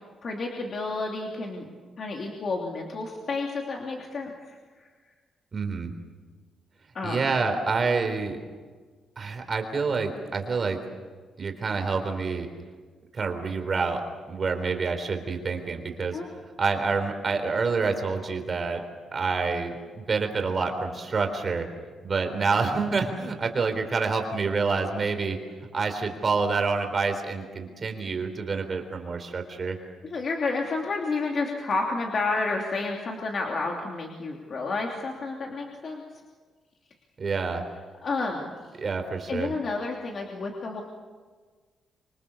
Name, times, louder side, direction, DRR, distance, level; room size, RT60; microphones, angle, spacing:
voice 1, 0.2-1.7 2.0-4.9 6.9-7.2 16.1-16.3 30.1-36.0 38.0-38.5 39.3-40.8, left 3 dB, 40° left, 0 dB, 3.0 m, -30 dB
voice 2, 5.5-5.9 7.0-8.4 9.2-10.8 11.4-12.5 13.1-14.0 14.3-16.2 16.6-18.8 19.1-21.7 22.0-25.4 25.7-29.8 37.2-37.6 38.8-39.5, right 4 dB, 30° right, 6 dB, 3.8 m, -27 dB
27.0 x 24.5 x 7.1 m, 1.5 s
cardioid pair, 165°, 0 cm